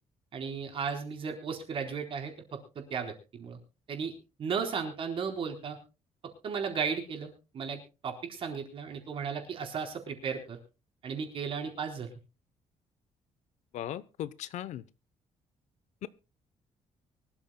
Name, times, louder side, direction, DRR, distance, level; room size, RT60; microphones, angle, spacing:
voice 1, 0.3-3.6 3.9-4.1 4.4-5.8 6.4-10.6 11.0-12.1, right 6 dB, 45° right, 4 dB, 4.0 m, -35 dB
voice 2, 13.7-14.8 16.0-16.1, left 11 dB, 65° left, 17 dB, 0.8 m, -37 dB
24.0 x 13.0 x 2.2 m, 0.31 s
cardioid pair, 165°, 13 cm